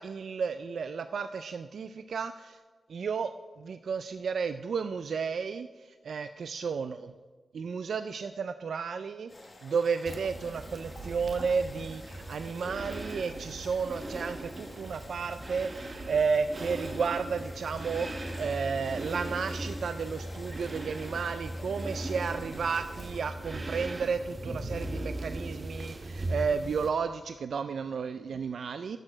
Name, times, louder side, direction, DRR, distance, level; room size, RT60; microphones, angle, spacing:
voice 1, 0.0-2.6 2.9-7.1 7.5-9.3 9.6-29.0, right 5 dB, 75° right, 10 dB, 0.3 m, -32 dB
sound 1, 9.3-23.2, left 2 dB, 25° left, 1.3 m, -49 dB
sound 2, 10.0-26.9, right 1 dB, 30° right, 0.9 m, -39 dB
10.5 x 6.7 x 6.1 m, 1.4 s
wide cardioid pair, 155°, 0 cm